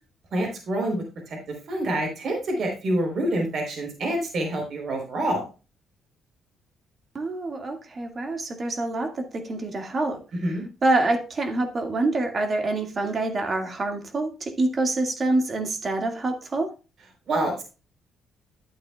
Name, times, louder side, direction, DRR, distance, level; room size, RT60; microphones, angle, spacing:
voice 1, 0.3-5.5 10.4-10.6 17.3-17.6, right 1 dB, 60° right, 2 dB, 3.7 m, -27 dB
voice 2, 7.1-10.2 10.8-16.7, right 2 dB, 40° right, 5 dB, 1.9 m, -26 dB
11.5 x 8.7 x 2.3 m, 0.32 s
cardioid pair, 90°, 0 cm